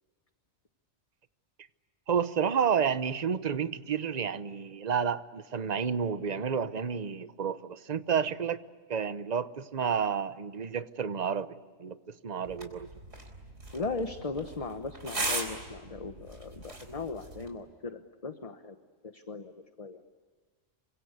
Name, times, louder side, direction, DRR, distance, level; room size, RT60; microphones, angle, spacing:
voice 1, 2.1-8.6 8.9-11.5 11.8-12.9, right 7 dB, 40° right, 13 dB, 1.0 m, -30 dB
sound 1, 12.5-17.5, right 2 dB, 90° right, 4.4 m, -38 dB
voice 2, 13.7-18.7 19.0-19.5 19.8-20.0, left 3 dB, 30° left, 8 dB, 1.2 m, -38 dB
28.5 x 25.0 x 8.2 m, 1.5 s
omnidirectional pair, 1.2 m